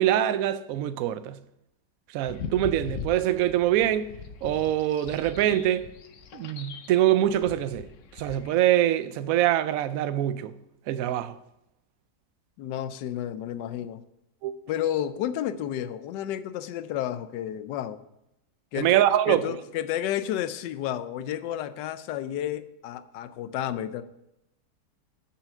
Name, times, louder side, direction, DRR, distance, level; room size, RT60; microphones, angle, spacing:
voice 1, 0.0-1.4 2.1-4.1 4.4-5.8 6.3-7.9 8.2-10.5 10.9-11.4 14.4-14.5 18.8-19.6, right 12 dB, 70° right, 0.8 m, -24 dB
sound 1, 2.2-8.5, left 6 dB, 60° left, 0.8 m, -41 dB
voice 2, 12.6-14.0 14.7-18.0 18.7-19.0 19.3-24.0, left 11 dB, 80° left, 1.2 m, -31 dB
7.0 x 5.8 x 7.5 m
omnidirectional pair, 1.9 m